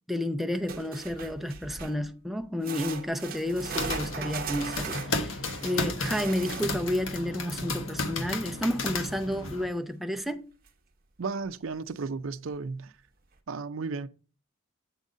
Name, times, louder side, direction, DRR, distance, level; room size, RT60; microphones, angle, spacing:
voice 1, 0.1-10.4, left 1 dB, ahead, 0.5 m, -31 dB
sound 1, 0.7-2.1 2.6-7.0 10.2-10.3 10.7-10.8 11.5-11.6, right 5 dB, 45° right, 0.9 m, -38 dB
sound 2, 3.4-9.6, left 3 dB, 80° left, 1.2 m, -34 dB
voice 2, 11.2-12.9 13.5-14.1, right 4 dB, 75° right, 0.5 m, -34 dB
8.2 x 4.0 x 5.1 m
head